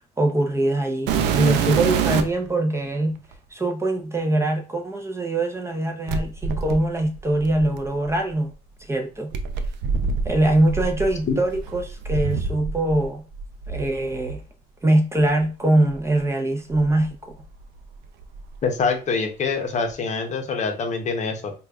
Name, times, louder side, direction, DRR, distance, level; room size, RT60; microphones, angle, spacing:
voice 1, 0.2-3.1 3.5-8.5 8.8-9.3 10.2-13.2 13.7-14.4 14.8-17.4, right 1 dB, 15° right, 0.5 m, -23 dB
sound 1, 1.1-2.5 3.3-3.4 6.1-8.2 9.3-13.1 13.3-14.4 15.2-15.3 15.9-16.0 16.7-17.8 18.0-18.6 19.9-20.0, right 5 dB, 85° right, 0.4 m, -27 dB
voice 2, 18.6-21.5, left 4 dB, 45° left, 0.7 m, -25 dB
4.9 x 2.3 x 2.3 m
cardioid pair, 110°, 17 cm